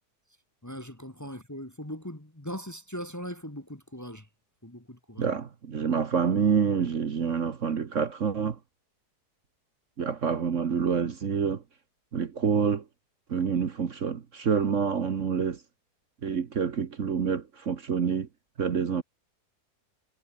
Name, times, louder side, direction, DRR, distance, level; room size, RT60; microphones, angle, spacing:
voice 1, 0.6-4.3 4.6-5.3, equal, 10° left, 1.6 m, -40 dB
voice 2, 5.2-8.6 10.0-11.6 12.1-12.8 13.3-15.6 16.2-18.3 18.6-19.0, right 6 dB, 50° right, 1.5 m, -27 dB
omnidirectional pair, 1.7 m